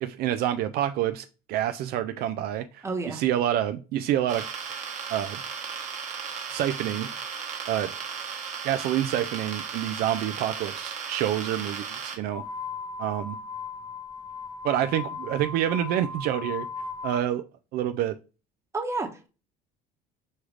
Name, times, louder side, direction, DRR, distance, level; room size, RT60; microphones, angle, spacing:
voice 1, 0.0-4.8 5.1-5.4 6.5-7.1 7.7-7.9 8.6-12.4 13.0-13.4 14.6-16.7 17.0-17.5 17.7-18.2, right 11 dB, 65° right, 0.4 m, -27 dB
voice 2, 2.8-3.2 18.7-19.3, right 3 dB, 15° right, 1.0 m, -30 dB
sound 1, 4.3-12.2, right 6 dB, 45° right, 1.2 m, -35 dB
sound 2, 12.3-17.2, left 5 dB, 20° left, 0.7 m, -37 dB
6.4 x 2.4 x 3.1 m
supercardioid pair, 90°, 17 cm